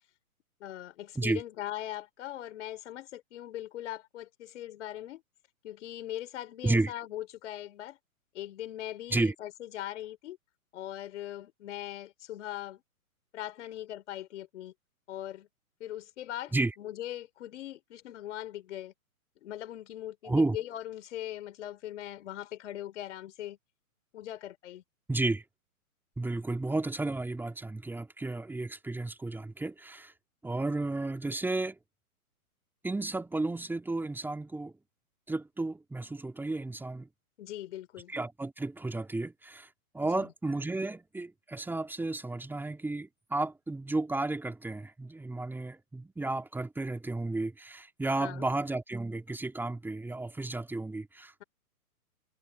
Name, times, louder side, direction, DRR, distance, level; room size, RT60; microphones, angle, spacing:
voice 1, 0.6-5.2 5.6-8.0 8.3-10.4 10.7-12.8 13.3-14.7 15.1-15.5 15.8-18.9 19.4-23.6 24.1-24.8 37.4-38.1 40.0-40.3 48.2-48.5, left 13 dB, 50° left, 3.8 m, -40 dB
voice 2, 20.2-20.6 25.1-25.4 26.2-30.1 30.4-31.8 32.8-34.7 35.3-37.1 38.1-39.7 39.9-51.4, right 2 dB, 5° right, 3.7 m, -32 dB
hypercardioid pair, 130°, 43 cm